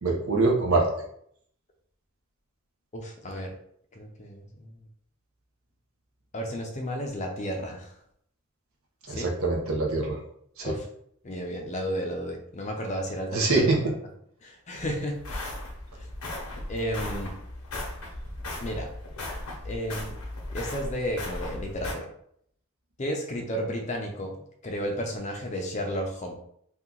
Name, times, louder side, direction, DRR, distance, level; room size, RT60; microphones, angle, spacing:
voice 1, 0.0-0.9 9.1-10.2 10.6-10.7 13.3-13.9, right 3 dB, 70° right, 0 dB, 0.8 m, -24 dB
voice 2, 2.9-3.6 3.9-4.8 6.3-8.0 9.1-9.3 10.6-10.9 11.2-13.9 14.4-15.6 16.0-16.1 16.7-17.4 18.6-18.9 19.6-20.1 20.5-22.1 23.0-26.3, equal, 30° left, 2 dB, 0.5 m, -33 dB
sound 1, 14.8-21.9, left 1 dB, 80° left, 0.8 m, -37 dB
2.8 x 2.3 x 3.7 m, 0.68 s
head